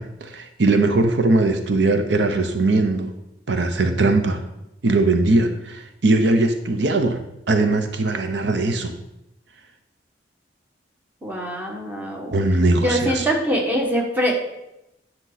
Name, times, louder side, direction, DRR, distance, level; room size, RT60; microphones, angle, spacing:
voice 1, 0.0-3.1 3.5-4.4 4.8-8.9 12.3-13.3, right 2 dB, 80° right, 7 dB, 0.8 m, -20 dB
voice 2, 11.2-12.4 12.8-14.3, equal, 10° right, -1 dB, 1.5 m, -23 dB
10.0 x 6.1 x 4.1 m, 0.88 s
head